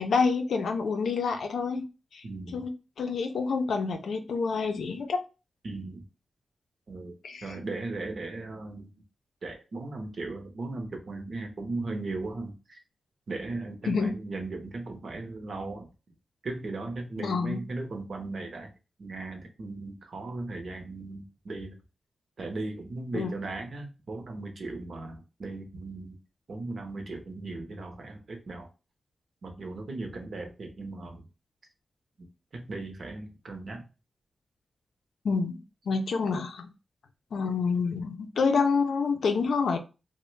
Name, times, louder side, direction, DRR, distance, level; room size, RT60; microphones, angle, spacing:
voice 1, 0.0-1.8 2.1-2.2 2.5-5.2 7.2-7.5 13.9-14.2 17.2-17.6 23.1-23.4 35.2-35.6 35.9-36.7 37.3-39.8, left 5 dB, 80° left, 6 dB, 0.4 m, -28 dB
voice 2, 2.2-2.7 5.6-6.0 6.9-7.1 7.4-8.9 9.4-12.8 13.3-15.9 16.4-18.7 19.0-21.7 22.4-26.2 26.5-28.7 29.4-31.2 32.5-33.8, right 2 dB, 50° right, 4 dB, 0.7 m, -37 dB
3.1 x 2.1 x 3.1 m, 0.31 s
wide cardioid pair, 175°, 0 cm